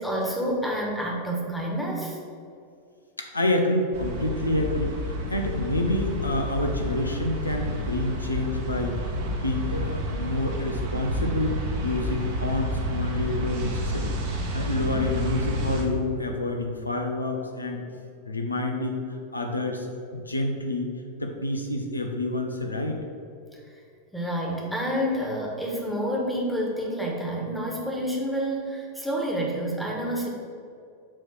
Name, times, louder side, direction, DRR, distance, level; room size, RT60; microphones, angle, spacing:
voice 1, 0.0-2.2 23.7-23.8 24.1-30.3, equal, ahead, -2 dB, 1.5 m, -28 dB
voice 2, 3.2-14.1 14.5-17.8 18.3-20.9 21.2-23.0, left 1 dB, 80° left, 3 dB, 0.7 m, -28 dB
sound 1, 3.9-15.8, equal, 55° right, 1.3 m, -30 dB
7.6 x 3.2 x 6.2 m, 2.4 s
figure-of-eight pair, 90°, 0 cm